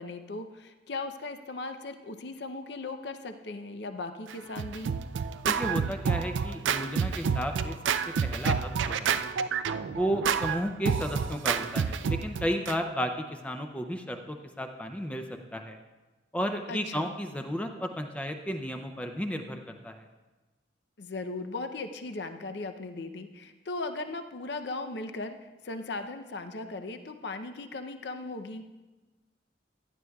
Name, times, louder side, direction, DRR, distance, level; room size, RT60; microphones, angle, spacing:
voice 1, 0.0-5.0 16.7-17.1 21.0-25.4 25.6-28.7, left 3 dB, 65° left, 7 dB, 0.6 m, -38 dB
Scratching (performance technique), 4.3-12.8, right 6 dB, 85° right, 0.4 m, -29 dB
voice 2, 5.4-7.7 8.2-9.2 9.9-15.2 15.5-15.8 16.3-20.0, equal, 5° left, 5 dB, 0.5 m, -33 dB
16.0 x 11.0 x 2.3 m, 1.2 s
head